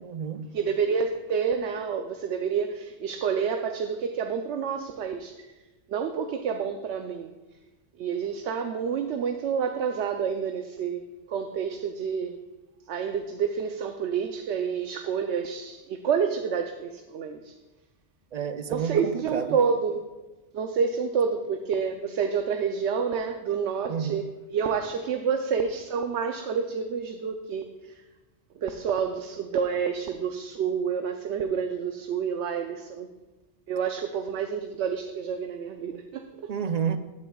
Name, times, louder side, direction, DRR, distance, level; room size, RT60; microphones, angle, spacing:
voice 1, 0.0-0.6 18.3-19.6 23.9-24.2 36.5-37.0, right 7 dB, 50° right, 0.5 m, -30 dB
voice 2, 0.5-5.5 5.9-7.3 8.0-12.4 12.9-17.5 18.7-20.0 20.5-28.0 28.6-33.1 33.7-36.5, right 6 dB, 85° right, 0.9 m, -29 dB
15.0 x 9.6 x 2.3 m
omnidirectional pair, 1.1 m